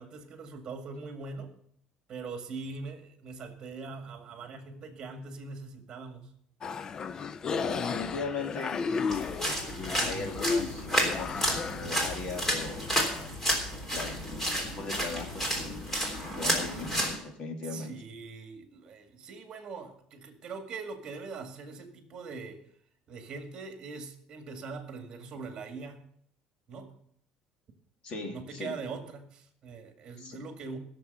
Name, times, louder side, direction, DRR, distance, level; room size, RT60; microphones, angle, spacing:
voice 1, 0.0-1.6 2.1-6.3 16.7-16.8 17.7-22.6 23.1-26.0 26.7-26.9 28.2-30.8, right 4 dB, 35° right, 5 dB, 2.1 m, -42 dB
sound 1, 6.6-13.3, left 5 dB, 30° left, 0.4 m, -34 dB
voice 2, 7.5-8.8 10.0-12.9 13.7-15.8 16.3-17.9 28.0-28.8 30.2-30.4, left 3 dB, 45° left, 3 dB, 2.5 m, -38 dB
sound 2, 9.1-17.2, equal, 15° left, 3.4 m, -31 dB
16.0 x 6.9 x 6.8 m, 0.68 s
cardioid pair, 150°, 2 cm